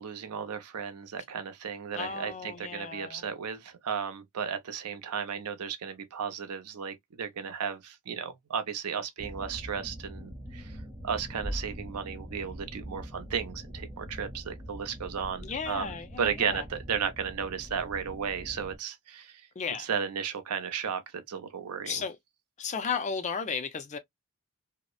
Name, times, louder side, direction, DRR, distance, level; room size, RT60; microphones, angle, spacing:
voice 1, 0.0-10.8 11.0-19.4 19.8-22.0, right 7 dB, 90° right, 0.6 m, -34 dB
voice 2, 1.9-3.3 15.4-16.6 19.6-19.9 21.8-22.2 22.6-24.0, left 6 dB, 35° left, 0.4 m, -34 dB
sound 1, 9.2-18.8, equal, 15° right, 0.7 m, -42 dB
2.8 x 2.0 x 2.2 m
head